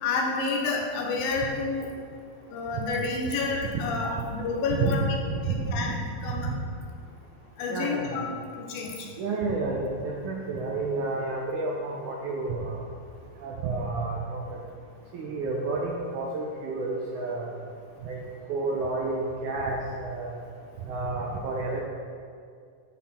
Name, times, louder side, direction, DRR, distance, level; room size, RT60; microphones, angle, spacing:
voice 1, 0.0-1.9 2.5-5.1 5.4-6.5 7.6-8.3 8.6-9.1, left 4 dB, 75° left, 0 dB, 2.6 m, -29 dB
voice 2, 5.3-5.9 7.7-8.1 9.2-12.8 13.4-14.6 15.1-17.5 18.0-18.2 18.5-20.3 20.8-21.8, right 3 dB, 75° right, -2 dB, 1.8 m, -30 dB
12.0 x 5.7 x 4.3 m, 2.2 s
omnidirectional pair, 4.3 m